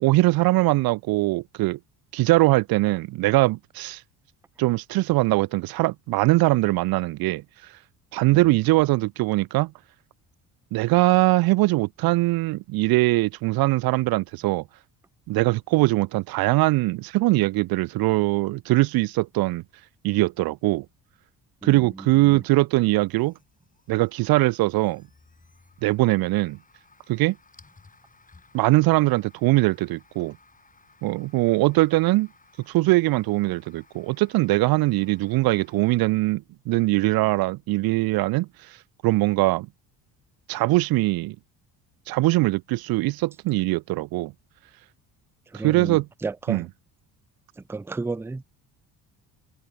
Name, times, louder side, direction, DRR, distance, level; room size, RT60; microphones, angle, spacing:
voice 1, 0.0-1.8 2.1-4.0 4.6-7.4 8.1-9.7 10.7-14.6 15.3-19.6 20.0-20.9 21.6-23.3 23.9-25.0 25.8-26.6 27.1-27.4 28.5-30.4 31.0-32.3 32.7-38.5 39.0-39.7 40.5-41.4 42.1-44.3 45.6-46.0 46.5-46.6, right 20 dB, 65° right, 0.5 m, -21 dB
voice 2, 21.6-22.4 45.5-46.7 47.6-48.4, right 3 dB, 5° right, 0.4 m, -33 dB
sound 1, 23.1-36.0, left 3 dB, 20° left, 7.9 m, -58 dB
cardioid pair, 110°, 40 cm